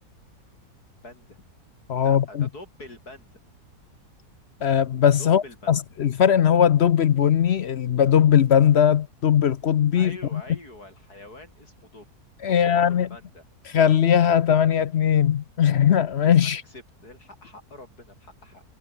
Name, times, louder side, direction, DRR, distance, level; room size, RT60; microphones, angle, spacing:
voice 1, 1.0-1.4 2.0-3.4 5.2-5.7 10.0-12.1 12.5-13.5 16.4-18.6, left 2 dB, 80° left, 7.9 m, -45 dB
voice 2, 1.9-2.2 4.6-10.4 12.4-13.1 13.7-16.6, left 9 dB, 55° left, 0.8 m, -19 dB
omnidirectional pair, 1.6 m